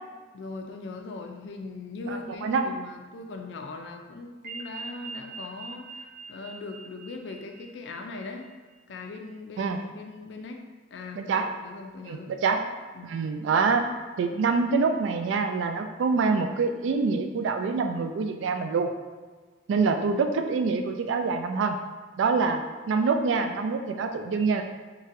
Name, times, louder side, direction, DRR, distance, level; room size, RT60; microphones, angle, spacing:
voice 1, 0.3-6.0 6.3-8.5 8.9-10.6 10.9-12.3 12.9-13.1, left 3 dB, 65° left, 3 dB, 0.4 m, -40 dB
voice 2, 2.1-2.7 9.6-9.8 11.2-11.5 12.0-12.6 13.0-13.8 14.2-18.9 19.7-21.8 22.2-22.6 22.9-24.6, right 4 dB, 75° right, 6 dB, 0.3 m, -25 dB
sound 1, 4.4-8.5, right 4 dB, 50° right, 0.7 m, -43 dB
3.9 x 2.2 x 2.6 m, 1.4 s
head